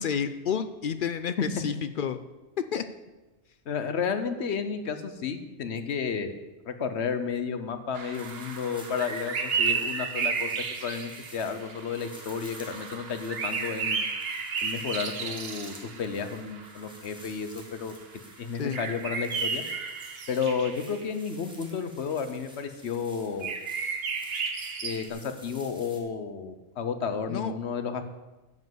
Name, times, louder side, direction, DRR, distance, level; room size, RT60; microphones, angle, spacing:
voice 1, 0.0-2.2 2.7-2.8 18.6-18.8 27.3-27.5, left 7 dB, 60° left, 11 dB, 0.6 m, -30 dB
voice 2, 3.7-6.3 6.7-10.6 10.8-14.0 14.6-17.9 18.4-19.6 20.3-23.5 24.8-28.0, left 6 dB, 75° left, 9 dB, 1.1 m, -32 dB
sound 1, 7.9-16.9 17.2-17.3 17.6-17.8 18.7-21.0 23.4-25.1, right 5 dB, 65° right, 1.2 m, -33 dB
sound 2, 8.1-26.0, equal, 5° right, 1.6 m, -52 dB
10.5 x 5.3 x 7.7 m, 1.1 s
omnidirectional pair, 1.1 m